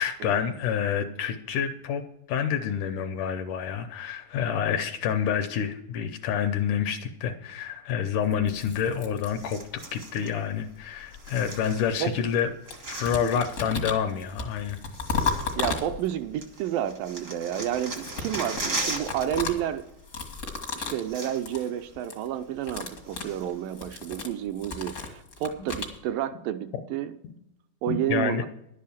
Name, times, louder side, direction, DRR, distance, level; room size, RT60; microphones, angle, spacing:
voice 1, 0.0-2.0 2.3-12.5 12.8-14.8 25.6-25.7 27.9-28.4, left 8 dB, 75° left, 2.0 m, -28 dB
sound 1, 8.3-9.9 10.8-12.4 12.7-16.3 17.7-21.1 21.4-21.7 22.0-22.3 22.6-26.0, left 4 dB, 55° left, 0.8 m, -35 dB
sound 2, 9.3-10.3 11.1-12.2 12.4-13.7 14.5-14.6 14.9-16.1 16.4-19.4 19.7-19.9 20.6-20.7 20.9-21.7 22.0-22.1 22.6-23.6 24.1-24.2, right 2 dB, 50° right, 0.9 m, -38 dB
voice 2, 15.3-19.9 20.8-27.2 27.8-28.5, right 11 dB, 80° right, 2.1 m, -30 dB
11.0 x 7.6 x 7.1 m
omnidirectional pair, 4.2 m